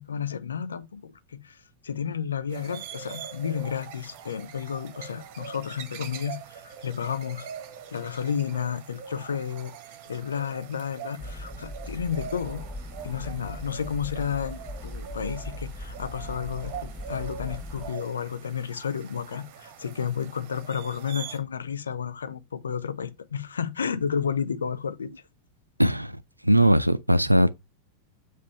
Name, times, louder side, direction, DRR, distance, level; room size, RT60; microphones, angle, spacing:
voice 1, 0.0-1.6 1.8-7.5 7.9-9.7 10.1-12.6 13.0-25.1, left 7 dB, 70° left, 0.6 m, -32 dB
sound 1, 2.5-21.4, right 8 dB, 45° right, 1.2 m, -43 dB
sound 2, 11.2-17.9, left 1 dB, 25° left, 1.6 m, -39 dB
voice 2, 25.8-27.6, equal, 90° right, 0.4 m, -20 dB
7.3 x 3.2 x 5.4 m
figure-of-eight pair, 90°, 0 cm